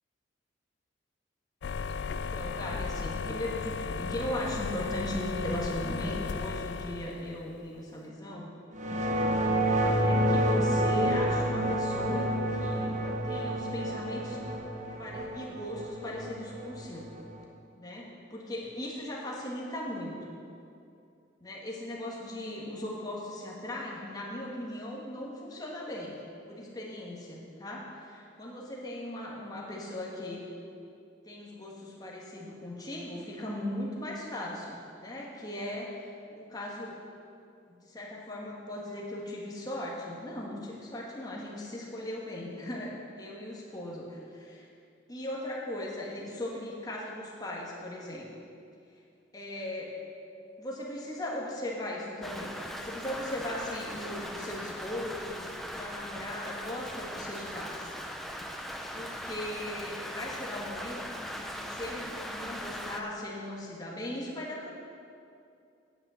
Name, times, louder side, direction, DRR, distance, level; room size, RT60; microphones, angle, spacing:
sound 1, 1.6-7.6, left 5 dB, 55° left, 0.3 m, -35 dB
voice 1, 2.1-8.5 10.0-14.4 15.0-17.1 17.8-20.3 21.4-26.2 26.5-27.9 28.4-30.4 31.2-36.0 36.3-37.0 37.7-44.7 45.1-48.3 49.3-49.9 50.6-57.9 58.9-64.7, left 1 dB, 20° left, -4 dB, 1.5 m, -38 dB
sound 2, 8.7-17.4, equal, 35° right, 0.9 m, -29 dB
Rain, 52.2-63.0, equal, ahead, 0.5 m, -40 dB
8.9 x 8.2 x 7.6 m, 2.5 s
head